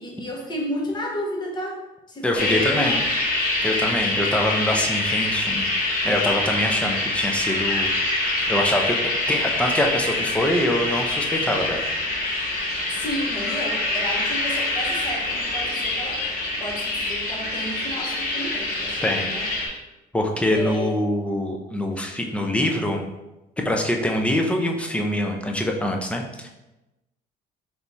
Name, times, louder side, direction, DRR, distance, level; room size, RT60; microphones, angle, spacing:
voice 1, 0.0-1.8 2.1-3.0 12.9-16.2 16.6-19.5 20.5-21.0, left 1 dB, 25° left, -2 dB, 1.0 m, -32 dB
voice 2, 2.2-3.0 3.6-5.7 6.0-7.9 8.5-9.0 9.3-11.9 19.0-19.3 20.1-23.1 23.6-26.5, left 1 dB, 5° left, 2 dB, 0.6 m, -24 dB
sound 1, 2.4-19.7, left 2 dB, 60° left, 1.2 m, -25 dB
3.3 x 3.0 x 4.1 m, 1.0 s
cardioid pair, 110°, 17 cm